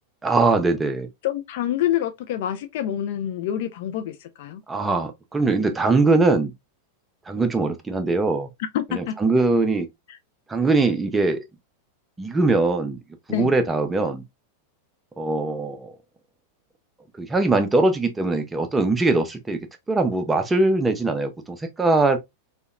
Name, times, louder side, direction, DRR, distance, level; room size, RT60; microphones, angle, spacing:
voice 1, 0.2-1.1 4.7-6.5 7.3-8.5 8.9-9.9 10.5-11.4 12.2-13.0 13.3-14.2 15.2-15.9 17.2-19.6 19.9-22.2, right 3 dB, 10° right, 0.5 m, -21 dB
voice 2, 1.2-4.6 8.7-9.2 13.3-13.5, left 11 dB, 50° left, 0.3 m, -26 dB
2.7 x 2.1 x 2.2 m
figure-of-eight pair, 90°, 0 cm